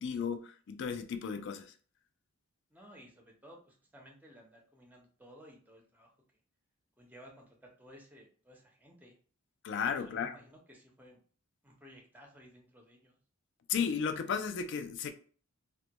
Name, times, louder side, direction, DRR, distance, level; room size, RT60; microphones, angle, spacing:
voice 1, 0.0-1.7 9.6-10.3 13.7-15.1, left 6 dB, 55° left, 0.3 m, -34 dB
voice 2, 2.7-6.1 7.0-9.2 9.9-11.2 11.6-13.2, equal, 10° right, 0.5 m, -56 dB
2.2 x 2.1 x 2.7 m
head